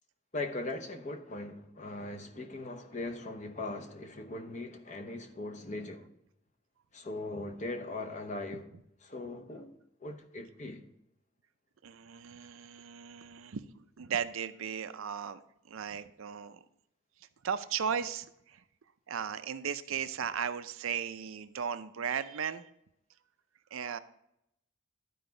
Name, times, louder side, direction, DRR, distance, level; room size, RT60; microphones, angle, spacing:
voice 1, 0.3-6.1 6.9-8.7 9.0-9.7 10.0-10.8, left 2 dB, 35° left, 0.8 m, -39 dB
voice 2, 11.8-13.6 14.0-15.4 15.7-16.6 17.4-18.6 19.1-22.6 23.7-24.0, right 7 dB, 75° right, 0.5 m, -36 dB
12.0 x 4.7 x 3.9 m
head